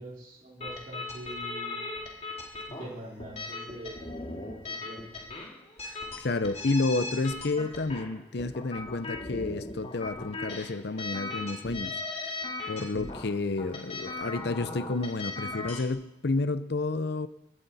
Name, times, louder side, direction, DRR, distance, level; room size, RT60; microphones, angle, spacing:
voice 1, 0.0-1.8 2.7-4.1 4.6-5.2, right 1 dB, 45° right, 4.5 m, -43 dB
sound 1, 0.6-15.9, left 3 dB, 35° left, 2.2 m, -38 dB
voice 2, 5.8-12.0 12.7-17.3, left 3 dB, 55° left, 0.7 m, -30 dB
20.5 x 13.0 x 4.2 m
head